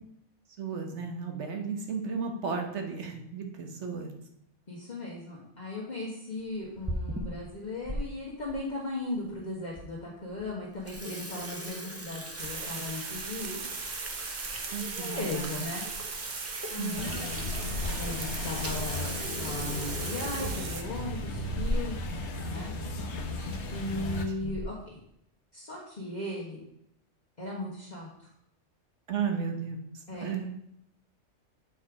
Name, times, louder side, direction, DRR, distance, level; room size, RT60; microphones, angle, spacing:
voice 1, 0.6-4.1 14.7-15.5 16.8-17.2 24.0-24.5 29.1-29.8 30.2-30.5, right 5 dB, 65° right, 4 dB, 1.4 m, -34 dB
voice 2, 4.7-13.6 14.7-15.8 16.7-17.3 18.0-21.9 22.5-22.7 23.7-25.0 25.5-26.6 27.4-28.1 30.1-30.5, left 2 dB, 35° left, -6 dB, 1.5 m, -37 dB
Water tap faucet / Sink (filling or washing), 6.6-8.0 8.5-8.6 9.3-9.4 9.8-9.9 10.2-10.4 10.7-22.1 22.4-22.5 22.8-22.9 23.7-24.0 24.4-24.8, equal, 15° right, 0.8 m, -39 dB
sound 1, 12.4-20.8, right 5 dB, 45° right, 0.8 m, -38 dB
sound 2, 17.0-24.2, left 2 dB, 70° left, 1.2 m, -35 dB
8.1 x 4.3 x 4.8 m, 0.76 s
omnidirectional pair, 1.3 m